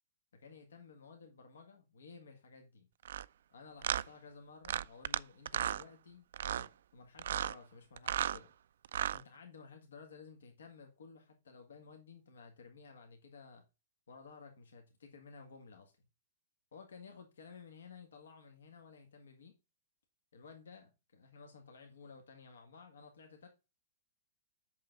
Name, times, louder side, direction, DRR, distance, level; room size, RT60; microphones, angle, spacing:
voice 1, 0.3-2.9 3.5-8.5 9.0-13.6 14.1-16.1 16.7-19.5 20.3-23.5, left 5 dB, 70° left, 1.7 m, -55 dB
sound 1, 3.0-3.2 3.8-4.0 4.6-5.2 5.5-5.8 6.3-6.7 7.2-7.5 8.0-8.4 8.8-9.2, right 10 dB, 65° right, 0.3 m, -34 dB
8.3 x 6.4 x 3.9 m
figure-of-eight pair, 110°, 0 cm